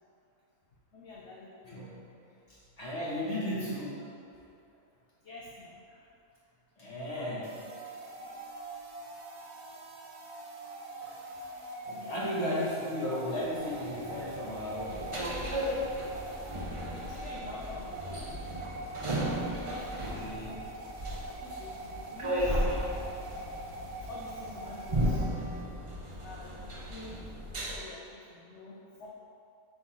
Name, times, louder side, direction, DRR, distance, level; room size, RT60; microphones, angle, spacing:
voice 1, 0.9-1.8 2.5-2.6 3.6-3.8 5.2-5.8 11.9-12.4 16.2-18.8 19.5-19.9 20.2-20.6 21.4-22.7 24.0-25.2 26.2-28.7 29.0-29.1, left 2 dB, 55° left, -4 dB, 1.0 m, -47 dB
voice 2, 1.6-2.0 2.8-4.0 5.9-6.0 6.8-7.6 8.2-8.3 11.0-11.1 11.8-15.0 19.9-20.5, left 1 dB, 25° left, -8 dB, 2.0 m, -35 dB
sound 1, 7.4-25.6, right 2 dB, 80° right, 1.4 m, -43 dB
sound 2, 13.6-27.8, equal, 30° right, 0.6 m, -35 dB
7.7 x 3.9 x 6.2 m, 2.6 s
omnidirectional pair, 1.6 m